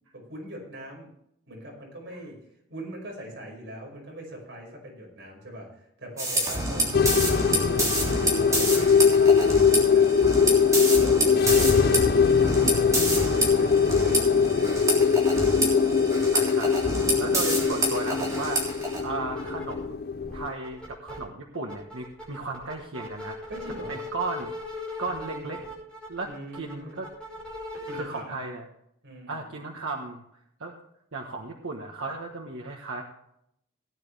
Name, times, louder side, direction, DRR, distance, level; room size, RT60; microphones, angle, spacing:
voice 1, 0.1-1.1 1.5-2.4 2.7-10.4 10.8-15.5 23.5-24.0 25.1-25.6 26.2-27.0 27.8-28.4 29.0-29.5, right 1 dB, 65° right, -2 dB, 5.6 m, -42 dB
sound 1, 6.2-19.0, right 1 dB, 15° right, 3.3 m, -28 dB
sound 2, 6.9-20.5, left 6 dB, 50° left, 0.4 m, -22 dB
voice 2, 16.3-18.6 19.0-20.0 20.3-23.4 23.9-24.5 25.0-25.6 26.1-27.1 27.9-28.6 29.3-30.2 30.6-30.8 31.1-33.0, right 3 dB, 90° right, 1 dB, 1.3 m, -35 dB
sound 3, 17.7-17.8 18.0-19.9 20.2-21.2 21.5-28.0, left 2 dB, 5° left, 4.9 m, -39 dB
18.0 x 9.4 x 3.4 m, 0.76 s
head